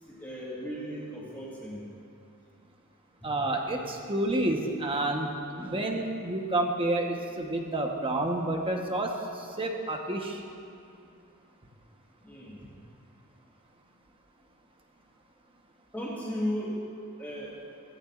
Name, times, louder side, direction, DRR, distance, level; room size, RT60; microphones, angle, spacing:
voice 1, 0.1-1.8 3.2-3.3 12.2-12.7 15.9-16.8 17.2-17.5, equal, 10° left, -7 dB, 3.1 m, -35 dB
voice 2, 3.2-10.4, right 1 dB, 25° right, 2 dB, 1.1 m, -29 dB
18.0 x 16.0 x 2.5 m, 2.5 s
head